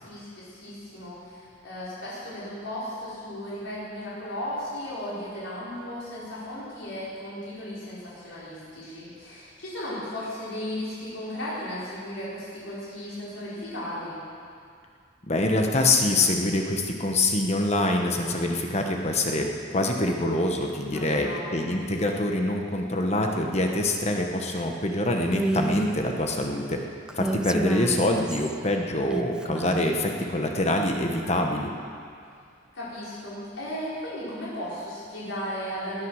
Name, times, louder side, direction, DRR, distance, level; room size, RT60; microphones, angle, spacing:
voice 1, 0.0-14.2 20.8-21.6 32.7-36.1, equal, 90° left, -9 dB, 4.9 m, -35 dB
voice 2, 15.3-19.5 19.7-26.8 27.1-31.7, left 1 dB, 35° left, 2 dB, 1.2 m, -25 dB
Female speech woman speaking, 25.3-26.0 27.1-28.6 29.1-30.0, right 1 dB, 5° right, 0.3 m, -30 dB
19.0 x 9.4 x 6.4 m, 2.3 s
head